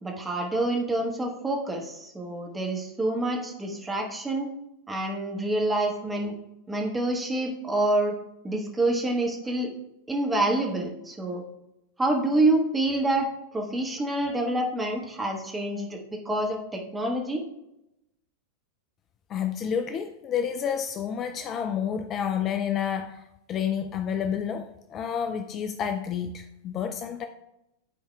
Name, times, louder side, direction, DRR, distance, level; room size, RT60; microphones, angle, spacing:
voice 1, 0.0-4.5 4.9-6.3 6.7-8.2 8.4-9.7 10.1-11.4 12.0-13.3 13.5-16.0 16.2-17.4, right 2 dB, 10° right, 0 dB, 1.3 m, -27 dB
voice 2, 19.3-27.3, left 8 dB, 30° left, 7 dB, 0.4 m, -30 dB
12.5 x 4.3 x 2.3 m, 0.87 s
figure-of-eight pair, 90°, 0 cm